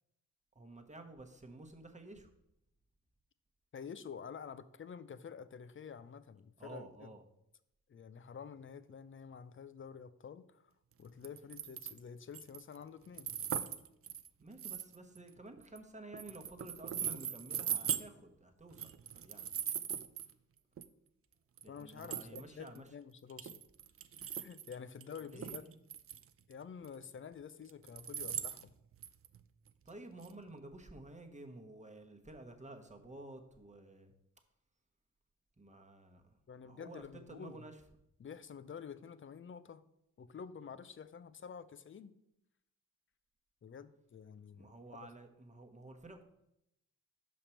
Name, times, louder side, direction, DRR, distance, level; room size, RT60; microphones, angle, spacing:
voice 1, 0.5-2.3 6.6-7.2 14.4-19.5 21.6-22.9 25.2-25.8 29.8-34.1 35.6-36.4 36.6-37.8 44.5-46.2, right 2 dB, 20° right, 4 dB, 1.1 m, -52 dB
voice 2, 3.7-7.1 7.9-10.7 11.0-13.3 21.7-23.6 24.2-25.7 26.5-28.7 36.5-37.6 38.2-39.8 40.2-42.1 43.6-44.8, left 6 dB, 40° left, 14 dB, 0.5 m, -49 dB
sound 1, 11.2-12.0 12.3-12.8 13.2-15.8 16.1-18.0 18.7-20.3 20.8-20.9 21.6-21.7 21.9-22.8 23.3-24.7 25.0-26.2 26.5-26.6 26.8-26.9 27.7-29.4 29.7-29.8 30.2-30.3, right 8 dB, 40° right, 0.4 m, -40 dB
5.7 x 5.2 x 4.4 m, 0.81 s
cardioid pair, 50°, 34 cm